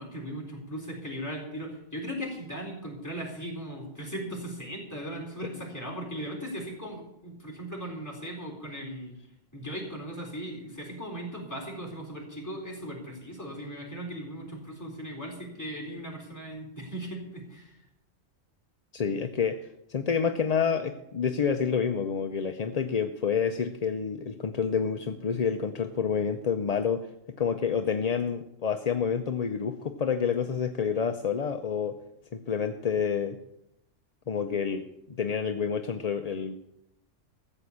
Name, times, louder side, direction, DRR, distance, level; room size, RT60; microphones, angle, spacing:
voice 1, 0.0-9.2 9.5-17.7, equal, 15° left, -2 dB, 4.2 m, -38 dB
voice 2, 18.9-19.6 19.9-27.1 27.4-32.0 32.3-33.4 34.3-36.6, left 6 dB, 40° left, 6 dB, 0.6 m, -28 dB
14.5 x 7.6 x 8.4 m, 0.83 s
omnidirectional pair, 1.3 m